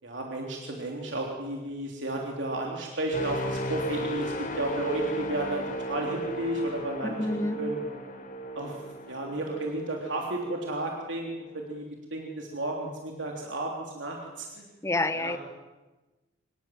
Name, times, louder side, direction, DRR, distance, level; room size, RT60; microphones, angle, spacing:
voice 1, 0.0-7.8 8.5-11.8 12.1-14.7 15.1-15.4, right 1 dB, 75° right, 0 dB, 3.3 m, -33 dB
sound 1, 3.1-10.9 11.4-11.6, right 1 dB, 45° left, 3.9 m, -35 dB
voice 2, 7.0-7.6 14.8-15.4, left 2 dB, 15° left, 12 dB, 1.0 m, -28 dB
25.0 x 21.0 x 7.8 m, 1.2 s
head